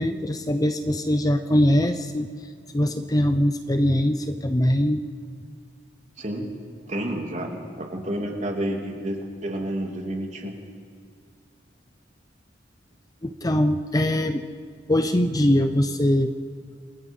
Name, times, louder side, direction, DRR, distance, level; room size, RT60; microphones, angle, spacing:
voice 1, 0.0-2.3 2.7-5.0 13.2-14.4 14.9-16.3, left 1 dB, 20° left, 8 dB, 0.7 m, -22 dB
voice 2, 6.2-6.5 6.9-10.6, right 1 dB, 40° right, 1 dB, 3.0 m, -30 dB
27.0 x 26.0 x 5.5 m, 2.1 s
head